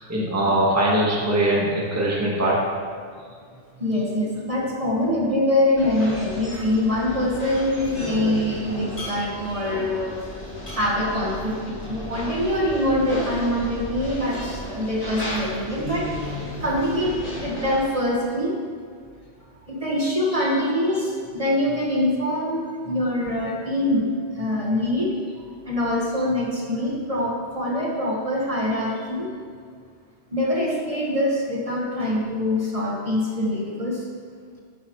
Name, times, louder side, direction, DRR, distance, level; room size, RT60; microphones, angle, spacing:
voice 1, 0.0-2.6 20.3-20.5, right 1 dB, 15° right, -5 dB, 1.5 m, -22 dB
voice 2, 3.8-10.2 10.8-16.1 16.6-18.5 19.7-25.1 25.7-29.3 30.3-34.0, left 1 dB, 30° right, -3 dB, 1.5 m, -24 dB
sound 1, 5.8-17.9, equal, 30° left, 3.1 m, -33 dB
11.5 x 9.7 x 3.2 m, 2.1 s
omnidirectional pair, 1.2 m